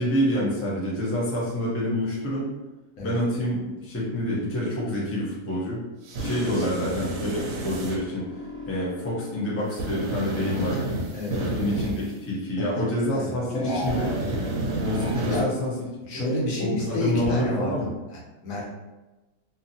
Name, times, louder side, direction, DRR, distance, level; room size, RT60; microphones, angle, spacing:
voice 1, 0.0-2.5 3.0-5.8 6.2-8.3 8.7-10.8 11.4-14.2 14.8-15.7 16.1-16.3 16.6-17.9, left 1 dB, 20° left, -6 dB, 0.3 m, -27 dB
sound 1, 6.0-8.0 9.7-12.1 13.8-15.4, right 2 dB, 70° right, 0.9 m, -30 dB
sound 2, 6.2-10.1 10.4-12.0 13.5-15.1, left 3 dB, 5° right, 0.7 m, -39 dB
voice 2, 11.1-11.5 13.1-13.7 15.3-15.5 16.1-17.7 18.1-18.7, left 1 dB, 65° left, -4 dB, 1.1 m, -30 dB
2.7 x 2.6 x 2.7 m, 1.1 s
omnidirectional pair, 1.6 m